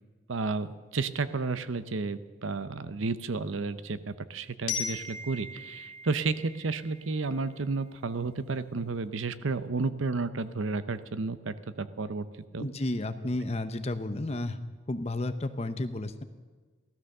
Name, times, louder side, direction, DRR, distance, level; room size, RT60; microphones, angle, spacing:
voice 1, 0.3-0.7 0.9-12.3 12.5-12.7, right 4 dB, 90° right, 13 dB, 0.7 m, -32 dB
Glockenspiel, 4.7-7.5, left 5 dB, 80° left, 2.5 m, -38 dB
voice 2, 12.6-14.6 14.9-16.2, left 2 dB, 35° left, 10 dB, 0.8 m, -32 dB
16.0 x 13.5 x 6.6 m, 1.4 s
head